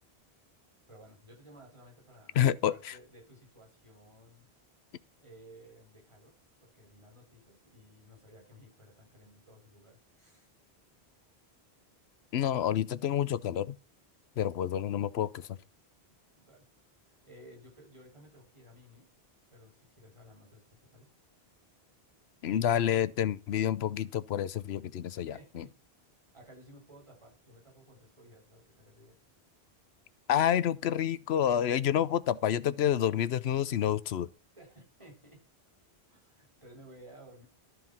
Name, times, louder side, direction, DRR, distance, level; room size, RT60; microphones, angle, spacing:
voice 1, 0.9-4.5 5.2-10.5 14.4-14.5 16.4-16.6 17.0-19.1 19.5-20.6 20.9-21.1 25.1-25.7 26.3-29.1 34.6-35.4 36.1-37.4, equal, 30° right, 4.7 m, -56 dB
voice 2, 2.4-2.9 12.3-13.8 14.4-15.6 22.4-25.7 30.3-34.3, left 10 dB, 85° left, 0.9 m, -28 dB
13.0 x 4.5 x 5.7 m
omnidirectional pair, 1.1 m